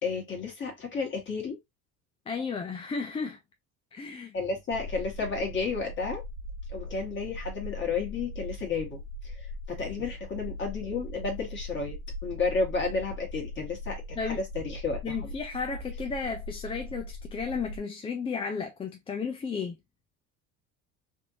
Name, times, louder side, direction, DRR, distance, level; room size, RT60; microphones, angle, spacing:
voice 1, 0.0-1.6 4.3-6.2 6.7-12.0 12.2-15.3, left 4 dB, 30° left, 1.8 m, -32 dB
voice 2, 2.3-3.4 3.9-4.4 14.2-14.4 15.0-19.8, left 5 dB, 15° left, 0.3 m, -33 dB
sound 1, 4.7-17.8, left 1 dB, 65° right, 1.4 m, -40 dB
3.5 x 2.6 x 2.8 m
cardioid pair, 130°, 36 cm